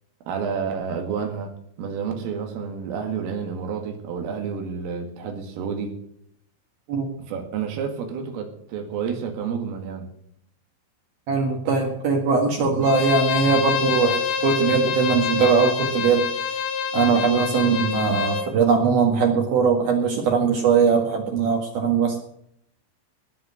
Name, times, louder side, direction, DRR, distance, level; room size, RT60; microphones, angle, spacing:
voice 1, 0.3-1.5 1.8-6.0 7.2-10.1, right 6 dB, 80° right, 4 dB, 4.6 m, -30 dB
voice 2, 11.3-16.6 16.9-22.2, right 5 dB, 60° right, 1 dB, 3.2 m, -21 dB
Bowed string instrument, 12.8-18.5, left 7 dB, 65° left, 3.0 m, -26 dB
19.5 x 6.7 x 8.0 m, 0.71 s
omnidirectional pair, 5.8 m